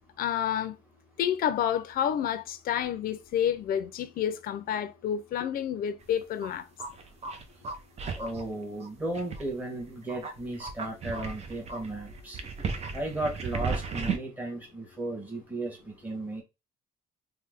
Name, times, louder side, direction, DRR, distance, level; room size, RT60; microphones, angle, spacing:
voice 1, 0.2-0.7 1.2-6.6, left 9 dB, 60° left, 0.5 m, -29 dB
sound 1, 6.0-8.5 8.8-9.7 10.1-14.2, right 5 dB, 40° right, 0.7 m, -35 dB
voice 2, 8.1-12.4 12.9-16.4, right 2 dB, 10° right, 1.3 m, -35 dB
3.3 x 2.2 x 3.5 m
cardioid pair, 110°, 17 cm